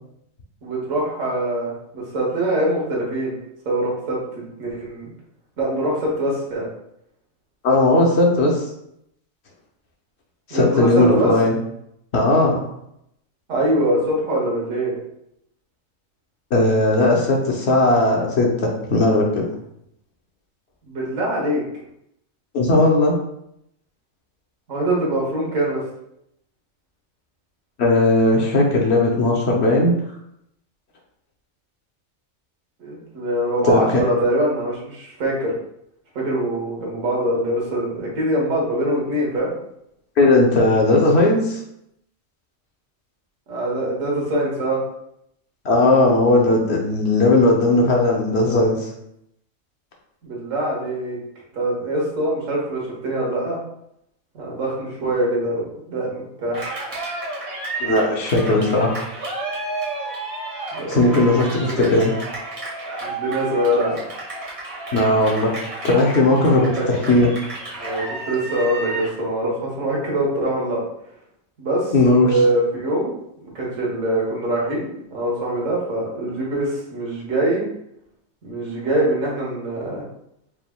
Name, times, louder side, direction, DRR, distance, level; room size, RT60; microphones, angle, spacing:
voice 1, 0.6-3.3 3.7-5.1 5.6-6.7 10.5-11.3 13.5-15.0 20.9-21.6 24.7-25.8 32.8-35.5 36.2-39.5 43.5-44.8 50.2-51.2 51.5-53.6 54.3-56.6 60.7-61.0 61.5-61.9 63.0-64.0 66.6-66.9 67.8-70.8 71.6-73.1 73.4-77.6 78.4-80.0, right 1 dB, 75° right, -4 dB, 1.6 m, -23 dB
voice 2, 7.6-8.6 10.5-11.5 12.1-12.6 16.5-19.4 22.5-23.2 27.8-30.0 33.6-33.8 40.2-41.6 45.6-48.7 57.8-59.0 60.9-62.1 64.9-65.5 65.8-67.3 71.9-72.3, left 2 dB, 55° left, -1 dB, 1.0 m, -17 dB
Cheering, 56.5-69.2, right 3 dB, 55° right, 1.6 m, -31 dB
4.7 x 3.5 x 2.3 m, 0.77 s
omnidirectional pair, 1.4 m